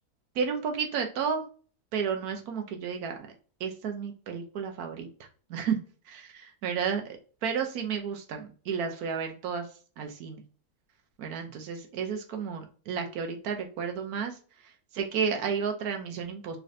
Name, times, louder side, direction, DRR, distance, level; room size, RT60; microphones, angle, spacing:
voice 1, 0.3-1.4 1.9-3.2 3.6-5.1 5.5-5.8 6.1-9.7 10.0-10.4 11.2-14.4 14.6-16.6, right 6 dB, 75° right, 4 dB, 1.2 m, -32 dB
3.7 x 3.2 x 2.5 m, 0.39 s
omnidirectional pair, 1.6 m